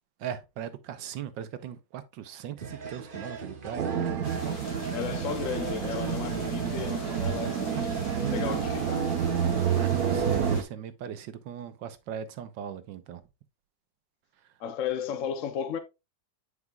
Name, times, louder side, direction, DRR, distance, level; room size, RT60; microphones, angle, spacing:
voice 1, 0.2-4.1 4.7-5.0 9.7-13.2, right 9 dB, 85° right, 1.5 m, -39 dB
sound 1, 2.6-8.6, right 5 dB, 40° right, 0.8 m, -40 dB
sound 2, 3.8-10.6, right 7 dB, 60° right, 1.2 m, -29 dB
sound 3, 4.2-10.6, left 2 dB, 90° left, 2.4 m, -45 dB
voice 2, 4.9-7.9 8.3-9.1 14.6-15.8, left 8 dB, 60° left, 0.8 m, -34 dB
9.6 x 4.9 x 2.3 m
omnidirectional pair, 2.0 m